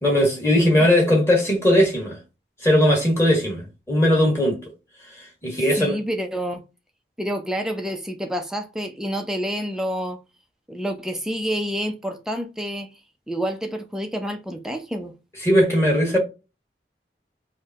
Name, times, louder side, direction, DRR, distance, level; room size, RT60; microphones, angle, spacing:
voice 1, 0.0-2.2 2.6-4.6 5.1-6.0 15.4-16.2, equal, 15° left, 1.6 m, -19 dB
voice 2, 5.8-6.6 7.2-10.2 10.7-12.9 13.3-15.1, equal, 5° right, 0.5 m, -28 dB
5.1 x 2.2 x 2.7 m
head